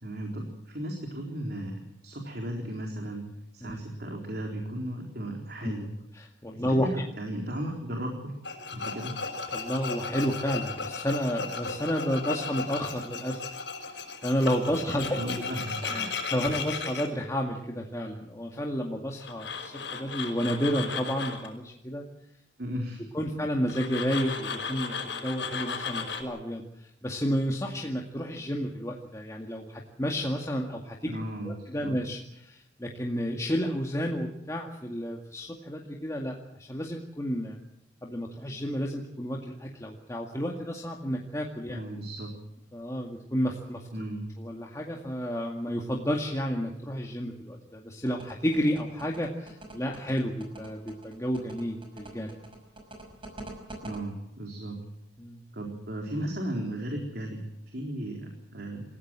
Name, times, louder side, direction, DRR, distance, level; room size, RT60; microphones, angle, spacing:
voice 1, 0.0-3.3 3.5-5.9 6.5-8.3 8.7-9.2 14.9-15.8 22.6-23.1 31.0-31.9 41.7-42.3 43.9-44.3 53.8-54.8 55.5-59.0, right 1 dB, 55° right, 1 dB, 4.0 m, -35 dB
voice 2, 6.1-6.9 9.5-13.4 13.8-15.2 15.8-22.0 23.1-31.1 31.4-37.6 38.0-41.8 42.7-43.9 44.4-52.4 55.2-55.4, equal, 15° left, 0 dB, 2.1 m, -31 dB
Tools, 8.4-17.1 19.2-21.5 23.7-26.2, left 5 dB, 70° left, 5.4 m, -35 dB
sound 1, 48.1-54.0, right 2 dB, 30° right, 5.6 m, -44 dB
28.0 x 16.0 x 7.6 m, 0.82 s
head